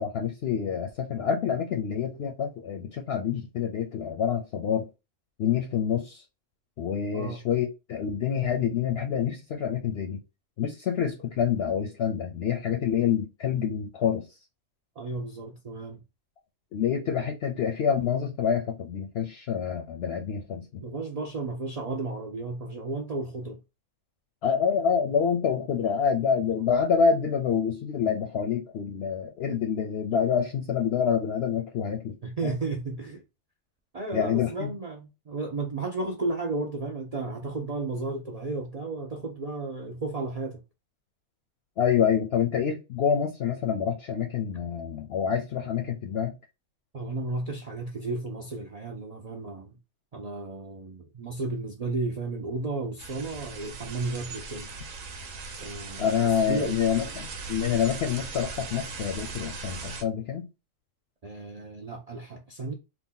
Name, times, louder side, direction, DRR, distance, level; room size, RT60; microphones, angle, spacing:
voice 1, 0.0-4.9 5.4-6.2 6.8-10.2 10.6-14.2 16.7-20.8 24.4-32.2 32.4-32.5 34.1-34.7 41.8-46.4 56.0-60.5, left 7 dB, 65° left, 0.7 m, -27 dB
voice 2, 15.0-16.0 20.8-23.6 26.4-26.6 32.2-33.2 33.9-40.6 46.9-49.8 50.1-54.7 55.6-56.9 61.2-62.7, right 3 dB, 65° right, 0.3 m, -33 dB
sound 1, 53.0-60.0, right 4 dB, 85° right, 1.1 m, -39 dB
2.7 x 2.4 x 3.7 m
omnidirectional pair, 1.3 m